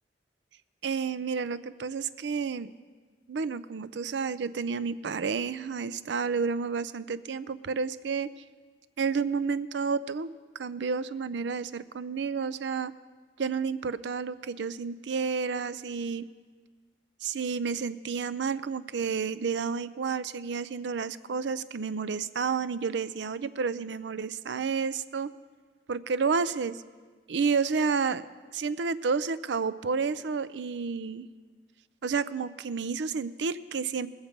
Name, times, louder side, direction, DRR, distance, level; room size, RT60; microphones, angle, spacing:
voice 1, 0.8-2.7 3.3-8.3 9.0-12.9 13.4-16.3 17.2-25.3 25.9-26.8 27.3-28.2 28.5-31.3 32.0-34.1, right 5 dB, 75° right, 16 dB, 0.5 m, -30 dB
21.0 x 7.2 x 5.2 m, 1.5 s
head